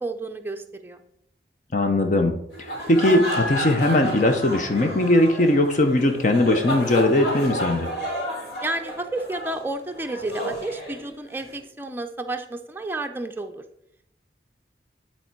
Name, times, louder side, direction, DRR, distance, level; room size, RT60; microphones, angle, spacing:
voice 1, 0.0-1.0 8.6-13.6, right 2 dB, 10° right, 5 dB, 0.5 m, -31 dB
voice 2, 1.7-2.3 2.6-7.9, left 1 dB, 45° left, 5 dB, 0.7 m, -20 dB
sound 1, 2.5-11.5, equal, 65° left, 3.6 m, -31 dB
9.7 x 4.4 x 4.5 m, 0.75 s
head